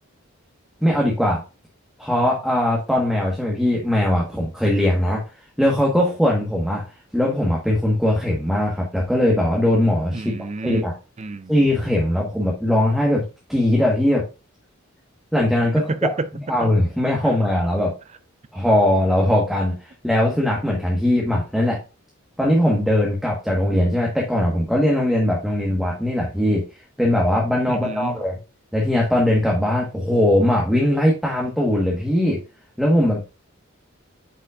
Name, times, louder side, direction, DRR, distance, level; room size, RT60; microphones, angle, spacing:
voice 1, 0.8-1.4 2.0-5.2 5.6-6.8 7.1-10.9 11.5-13.2 13.5-14.2 15.3-15.8 16.5-17.9 18.5-21.8 22.4-26.6 27.0-28.4 28.7-32.4 32.8-33.2, left 1 dB, ahead, 1.4 m, -20 dB
voice 2, 10.1-10.8 11.2-11.5 15.7-16.3 16.6-16.7 27.7-28.2, right 3 dB, 35° right, 0.5 m, -28 dB
8.4 x 5.5 x 2.5 m
head